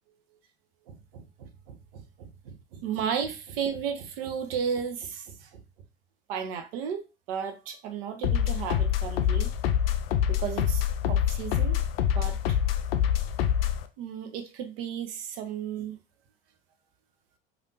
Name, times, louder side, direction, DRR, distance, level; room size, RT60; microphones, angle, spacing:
voice 1, 0.9-5.6 6.3-9.5 10.3-11.8 12.1-12.6 14.0-16.0, right 7 dB, 70° right, 0.7 m, -34 dB
sound 1, 8.2-13.9, left 9 dB, 80° left, 0.5 m, -26 dB
3.3 x 2.5 x 2.7 m
hypercardioid pair, 70°, 29 cm